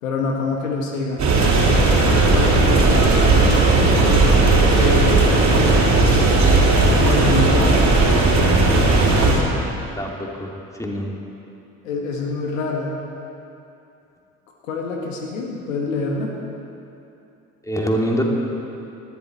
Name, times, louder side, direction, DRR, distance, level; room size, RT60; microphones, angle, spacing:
voice 1, 0.0-1.3 2.3-4.3 4.8-6.4 6.9-7.8 8.3-9.5 11.8-13.0 14.6-16.3, left 3 dB, 75° left, 0 dB, 1.6 m, -26 dB
sound 1, 1.2-9.3, right 3 dB, 45° right, 3.5 m, -15 dB
voice 2, 9.8-10.5 10.8-11.1 17.6-18.2, equal, 10° left, -1 dB, 2.7 m, -25 dB
19.5 x 14.5 x 4.2 m, 2.8 s
figure-of-eight pair, 50°, 40 cm